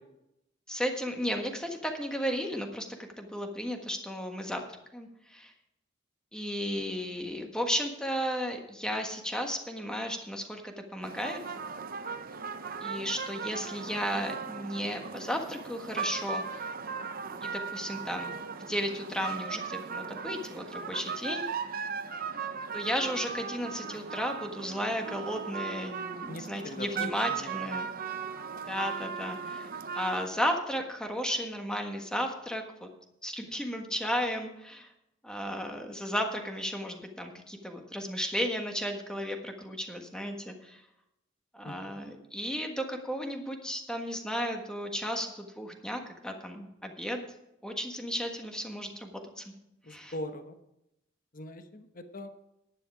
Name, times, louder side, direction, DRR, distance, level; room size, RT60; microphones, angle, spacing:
voice 1, 0.7-2.9 3.2-4.6 4.9-5.5 6.3-11.4 12.8-16.7 17.4-18.3 18.6-21.5 22.7-27.9 28.7-32.9 33.2-34.9 35.2-40.8 41.5-47.2 47.6-49.1 49.4-49.5 49.9-50.1, equal, 5° left, 3 dB, 1.5 m, -34 dB
sound 1, 11.0-30.3, right 5 dB, 50° right, 0.7 m, -38 dB
voice 2, 26.3-27.9 41.6-42.0 49.9-50.6 51.3-52.3, left 1 dB, 45° left, 8 dB, 1.0 m, -42 dB
11.0 x 10.0 x 4.9 m, 0.85 s
head